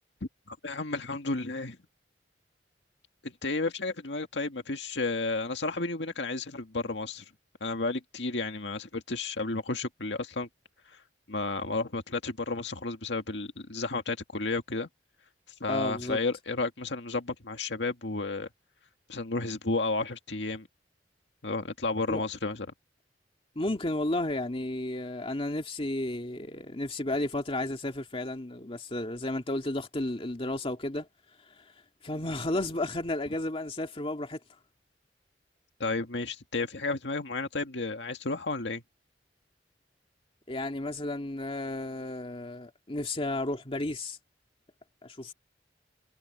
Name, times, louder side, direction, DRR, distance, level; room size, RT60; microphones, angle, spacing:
voice 1, 0.5-1.8 3.2-7.2 7.6-10.5 10.9-11.0 11.3-14.9 15.6-18.5 19.1-20.7 21.4-22.7 35.8-38.8, left 3 dB, 80° left, 1.9 m, -32 dB
voice 2, 15.7-16.2 22.1-22.3 23.6-31.1 32.0-34.4 40.5-44.2 45.0-45.3, left 1 dB, 30° left, 2.3 m, -32 dB
head